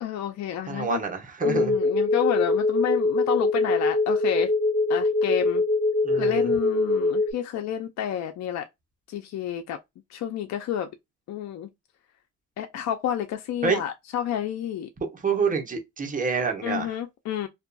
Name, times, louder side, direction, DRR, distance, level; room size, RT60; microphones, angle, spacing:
voice 1, 0.0-1.0 1.4-4.5 4.9-5.6 6.2-8.7 9.1-9.8 10.1-10.9 11.3-11.7 12.6-14.9 16.6-17.5, left 10 dB, 65° left, 0.5 m, -30 dB
voice 2, 0.7-1.7 6.0-6.5 13.6-13.8 15.0-16.9, right 5 dB, 25° right, 1.0 m, -27 dB
sound 1, 1.4-7.3, left 2 dB, 15° left, 0.5 m, -23 dB
2.6 x 2.4 x 2.2 m
cardioid pair, 90°, 30 cm